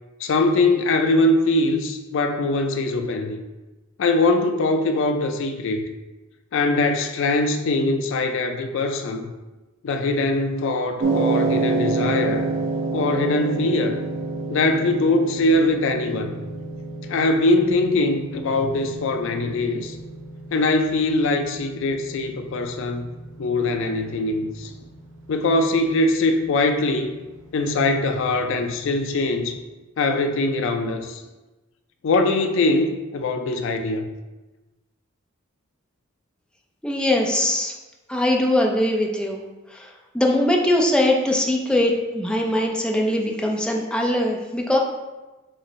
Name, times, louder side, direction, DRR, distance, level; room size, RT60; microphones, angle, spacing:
voice 1, 0.2-3.4 4.0-5.9 6.5-9.3 9.8-12.5 12.9-14.0 14.5-16.4 17.1-20.0 20.5-23.1 23.4-24.7 25.3-27.2 27.5-29.6 30.0-31.2 32.0-34.1, left 2 dB, 65° left, 6 dB, 0.4 m, -22 dB
sound 1, 11.0-29.3, right 3 dB, 65° right, 0.7 m, -30 dB
voice 2, 36.8-37.7 38.1-39.4 39.8-39.9 40.1-44.8, left 1 dB, 5° left, 0 dB, 0.5 m, -21 dB
6.8 x 2.6 x 3.1 m, 1.1 s
head